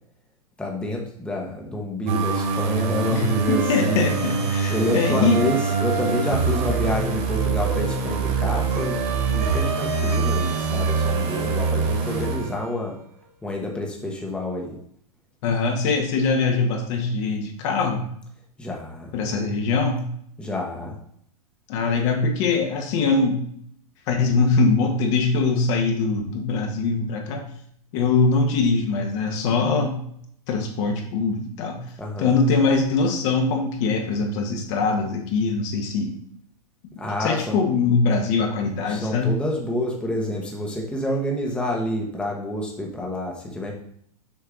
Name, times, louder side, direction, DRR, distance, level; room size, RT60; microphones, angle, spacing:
voice 1, 0.6-4.1 4.7-9.0 9.3-13.0 13.4-14.7 18.6-19.1 20.4-21.0 32.0-32.3 37.0-37.6 38.9-43.7, left 1 dB, 5° left, -1 dB, 1.1 m, -28 dB
sound 1, 2.1-12.9, right 5 dB, 45° right, 2.2 m, -24 dB
voice 2, 3.1-5.4 15.4-18.1 19.1-20.0 21.7-23.4 24.1-27.5 27.9-30.0 30.5-31.8 32.2-36.1 37.2-39.4, left 4 dB, 50° left, 2 dB, 1.3 m, -22 dB
6.6 x 4.5 x 3.8 m, 0.67 s
hypercardioid pair, 120°, 20 cm